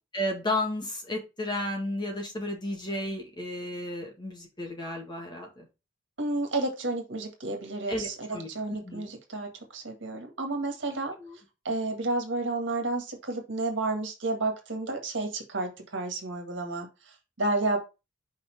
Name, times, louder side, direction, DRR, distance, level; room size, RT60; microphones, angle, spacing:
voice 1, 0.1-5.7 7.9-8.5 8.8-9.1 11.2-11.4, left 1 dB, 20° left, 1 dB, 1.8 m, -33 dB
voice 2, 6.2-11.1 11.7-17.8, right 2 dB, 65° right, 3 dB, 1.8 m, -31 dB
5.3 x 4.3 x 5.2 m, 0.28 s
head